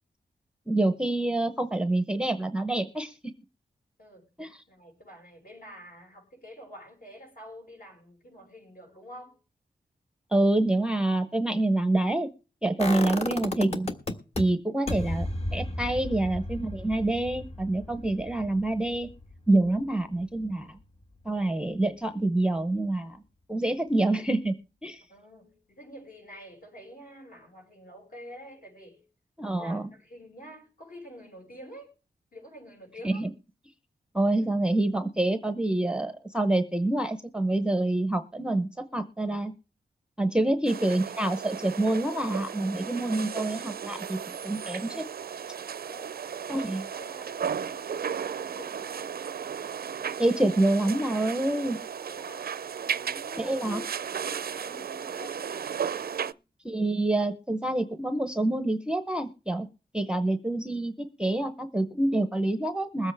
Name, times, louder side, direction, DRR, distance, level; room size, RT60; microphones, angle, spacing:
voice 1, 0.7-3.2 4.4-4.6 10.3-12.3 12.6-13.9 14.4-15.3 15.5-19.1 19.5-20.8 21.2-23.2 23.5-24.5 24.8-25.0 29.4-29.9 33.0-33.3 34.1-39.5 40.2-45.1 46.5-46.8 50.2-51.8 53.4-53.8 56.6-59.7 59.9-63.1, right 2 dB, 5° right, 0.8 m, -27 dB
voice 2, 4.7-9.4 14.8-15.1 16.0-16.2 25.1-29.0 29.6-31.9 32.3-33.3 40.4-40.5 45.8-46.2 46.5-49.2 52.1-52.5 52.8-55.4 55.9-56.4, equal, 55° left, 6.3 m, -48 dB
sound 1, 12.8-14.4 14.9-20.7 21.0-21.1, left 2 dB, 35° left, 1.5 m, -34 dB
sound 2, 40.7-56.3, right 7 dB, 60° right, 0.5 m, -35 dB
21.5 x 8.0 x 3.4 m
wide cardioid pair, 155°, 17 cm